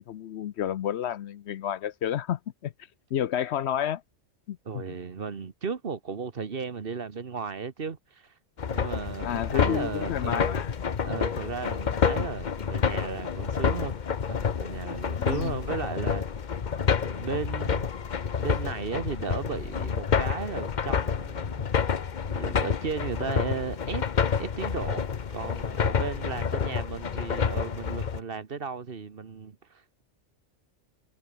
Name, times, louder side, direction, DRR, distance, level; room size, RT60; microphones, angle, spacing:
voice 1, 0.0-2.7 3.1-4.0 4.5-4.8 9.2-10.7 15.2-15.6, left 10 dB, 65° left, 0.9 m, -30 dB
voice 2, 4.6-8.3 8.7-10.6 11.0-14.0 14.3-16.5 17.0-17.9 18.4-22.0 22.3-24.1 24.4-30.0, right 5 dB, 50° right, 1.4 m, -35 dB
sound 1, 8.6-28.2, left 6 dB, 45° left, 0.9 m, -29 dB
omnidirectional pair, 1.2 m